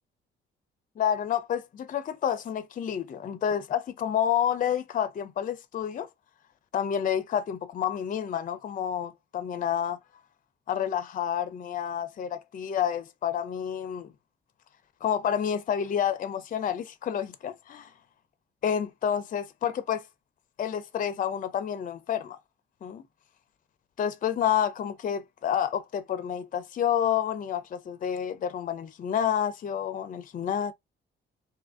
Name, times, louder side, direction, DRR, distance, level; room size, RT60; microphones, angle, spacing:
voice 1, 1.0-6.1 6.7-10.0 10.7-14.1 15.0-17.9 18.6-20.0 20.6-22.4 22.8-23.0 24.0-30.7, left 9 dB, 40° left, 0.5 m, -29 dB
2.8 x 2.5 x 3.5 m
cardioid pair, 90°, 20 cm